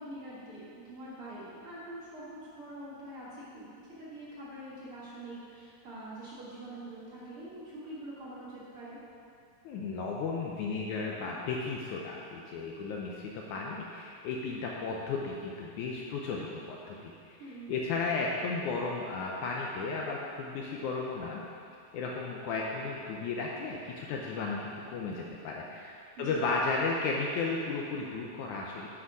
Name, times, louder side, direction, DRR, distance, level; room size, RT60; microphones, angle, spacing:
voice 1, 0.0-9.0 17.4-17.7 26.2-26.4, right 1 dB, 45° right, -8 dB, 2.1 m, -45 dB
voice 2, 9.7-17.4 17.7-21.4 21.9-28.9, left 4 dB, 75° left, -2 dB, 1.9 m, -34 dB
9.8 x 6.1 x 4.8 m, 2.4 s
omnidirectional pair, 4.0 m